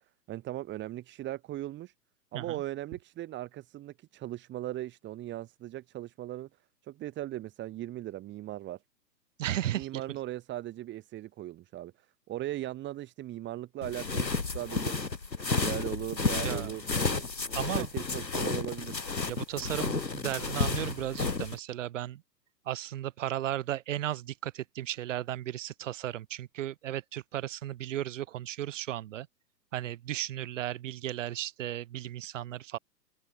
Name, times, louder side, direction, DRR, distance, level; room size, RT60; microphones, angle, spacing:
voice 1, 0.3-1.9 2.3-6.5 6.8-8.8 9.7-14.3 14.5-14.9 15.5-17.2 17.5-19.0, right 14 dB, 20° right, 5.5 m, -38 dB
voice 2, 9.4-9.9 16.4-16.7 17.5-17.9 19.3-22.2 22.7-29.3 29.7-32.8, right 13 dB, 50° right, 2.4 m, -35 dB
sound 1, 13.8-21.6, left 4 dB, 90° left, 3.4 m, -32 dB
figure-of-eight pair, 125°, 49 cm